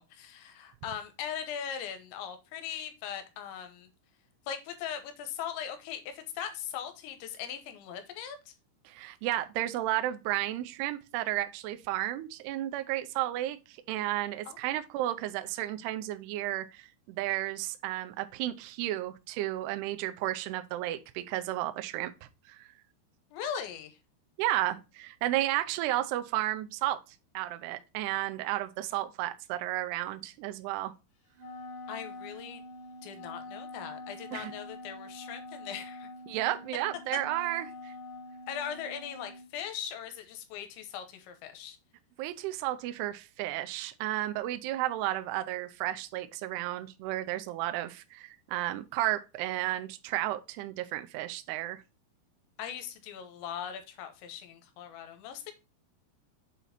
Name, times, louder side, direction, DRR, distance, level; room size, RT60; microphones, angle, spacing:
voice 1, 0.0-3.9 4.5-8.5 14.5-14.6 23.3-24.0 31.9-32.6 33.0-36.1 38.5-41.8 52.6-55.5, left 8 dB, 85° left, 3.1 m, -40 dB
voice 2, 8.9-13.6 13.9-22.1 22.5-22.7 24.4-27.0 27.3-30.9 34.3-34.5 36.3-37.9 42.2-51.8, right 15 dB, 90° right, 2.4 m, -33 dB
Wind instrument woodwind instrument, 31.3-39.5, left 2 dB, 45° left, 3.2 m, -45 dB
7.4 x 4.1 x 4.0 m
omnidirectional pair, 5.3 m